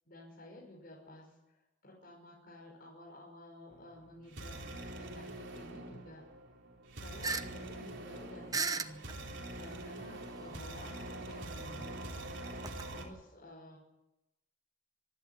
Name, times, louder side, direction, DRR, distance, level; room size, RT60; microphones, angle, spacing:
voice 1, 0.1-4.5 5.0-6.2 7.0-9.0 9.5-12.4 12.9-13.8, left 1 dB, 50° left, -3 dB, 5.6 m, -52 dB
sound 1, 3.7-13.1, right 1 dB, 65° right, 4.0 m, -45 dB
sound 2, 7.2-7.4 7.8-7.9 8.5-9.2 10.0-10.1 11.1-12.9, right 4 dB, 20° right, 1.0 m, -35 dB
25.5 x 11.5 x 9.5 m, 0.96 s
head